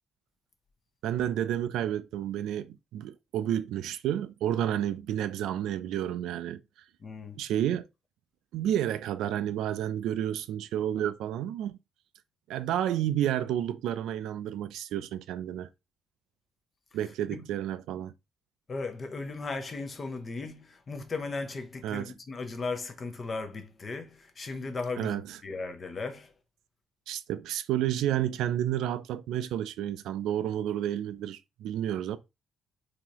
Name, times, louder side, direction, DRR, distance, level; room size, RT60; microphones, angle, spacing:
voice 1, 1.0-6.6 7.3-7.9 8.5-11.8 12.5-15.7 16.9-18.1 21.8-22.1 25.0-25.4 27.1-32.2, right 11 dB, 80° right, 0.3 m, -30 dB
voice 2, 7.0-7.4 17.3-17.5 18.7-26.3, left 3 dB, 25° left, 0.6 m, -36 dB
3.8 x 2.8 x 2.9 m
cardioid pair, 170°, 0 cm